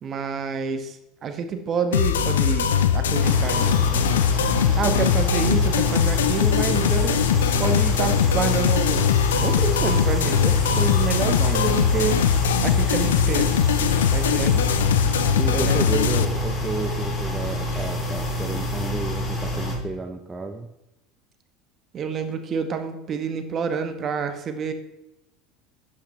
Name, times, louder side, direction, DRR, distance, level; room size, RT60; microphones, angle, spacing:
voice 1, 0.0-4.3 4.7-7.3 7.6-9.1 9.4-12.2 12.6-13.5 14.1-14.6 15.5-16.0 21.9-24.7, right 5 dB, 40° right, 8 dB, 1.4 m, -28 dB
sound 1, 1.9-16.2, left 8 dB, 80° left, 0.6 m, -21 dB
sound 2, 3.2-19.8, left 1 dB, 35° left, 3.2 m, -27 dB
voice 2, 15.4-20.7, right 3 dB, 20° right, 5 dB, 0.8 m, -32 dB
11.5 x 8.9 x 3.3 m, 0.91 s
hypercardioid pair, 75°, 0 cm